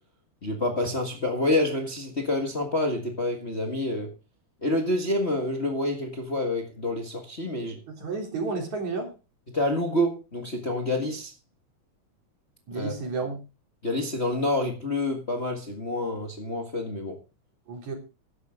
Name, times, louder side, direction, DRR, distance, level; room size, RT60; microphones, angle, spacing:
voice 1, 0.4-4.1 4.6-7.8 9.5-11.3 12.7-13.0 13.8-17.2, left 1 dB, 25° left, 1.6 m, -28 dB
voice 2, 7.9-9.1 12.7-13.4 17.7-17.9, right 4 dB, 70° right, 5.0 m, -31 dB
14.0 x 11.0 x 3.8 m
omnidirectional pair, 3.4 m